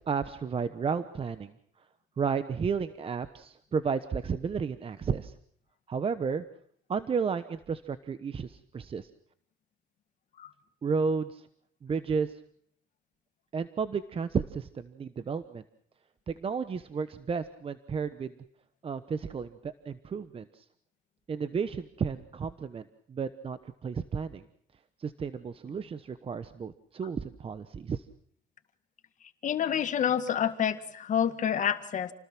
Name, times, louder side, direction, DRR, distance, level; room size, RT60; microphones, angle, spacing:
voice 1, 0.1-1.5 2.2-5.3 5.9-6.4 6.9-9.1 10.8-11.5 11.8-12.4 13.5-15.6 16.3-18.3 18.8-20.6 21.3-24.4 25.0-28.0, right 5 dB, 35° right, 12 dB, 1.1 m, -32 dB
voice 2, 29.4-32.1, left 9 dB, 50° left, 10 dB, 1.8 m, -28 dB
29.0 x 19.5 x 6.2 m, 0.65 s
cardioid pair, 110°, 17 cm